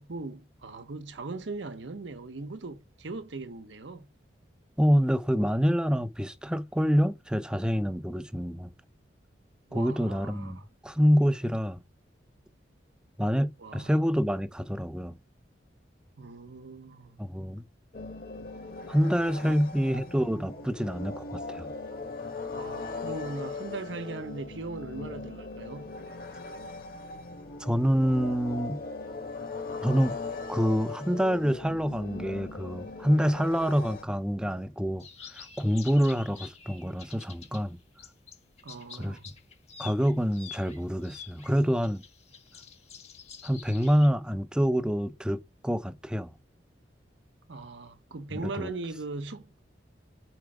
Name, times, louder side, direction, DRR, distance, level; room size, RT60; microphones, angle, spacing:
voice 1, 0.0-4.1 9.7-10.6 13.6-13.9 16.2-17.2 19.4-19.6 22.5-26.0 38.6-39.2 47.5-49.6, right 3 dB, 80° right, 0.8 m, -39 dB
voice 2, 4.8-8.7 9.7-11.8 13.2-15.2 17.2-17.6 18.9-21.7 27.6-28.8 29.8-30.1 30.5-35.1 35.3-37.8 39.0-39.2 39.8-42.0 43.4-46.3 48.4-48.7, equal, 5° right, 0.4 m, -26 dB
sound 1, 17.9-34.0, left 3 dB, 50° left, 1.2 m, -39 dB
sound 2, 35.0-37.6 38.0-44.1, left 7 dB, 35° left, 1.0 m, -48 dB
4.7 x 4.4 x 4.8 m
head